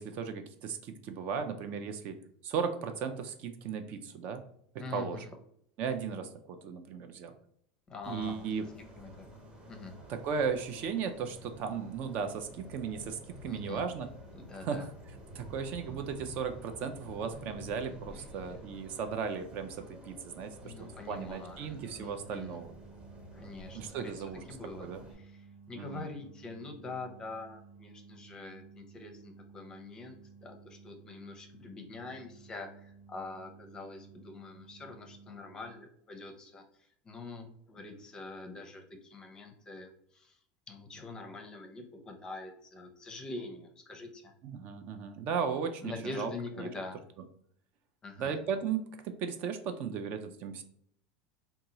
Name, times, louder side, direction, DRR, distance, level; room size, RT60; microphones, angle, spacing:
voice 1, 0.0-2.2 2.4-4.4 4.9-5.3 5.8-7.3 8.1-8.7 10.1-14.1 14.5-14.9 15.3-22.7 23.7-24.4 24.8-25.0 25.8-26.1 44.4-46.3 46.6-46.7 48.2-50.6, right 6 dB, 45° right, 8 dB, 0.3 m, -36 dB
voice 2, 4.8-5.2 7.9-8.5 9.0-9.3 9.7-9.9 13.5-13.8 14.3-14.9 18.1-18.2 20.6-22.6 23.3-24.2 24.5-24.9 25.1-36.6 37.0-40.4 40.7-44.3 45.8-47.0 48.0-48.4, left 3 dB, 20° left, 4 dB, 0.5 m, -44 dB
sound 1, 8.0-25.1, equal, 25° right, 1.0 m, -50 dB
sound 2, 21.5-35.7, right 5 dB, 70° right, 1.1 m, -55 dB
2.8 x 2.3 x 3.8 m, 0.68 s
supercardioid pair, 145°, 4 cm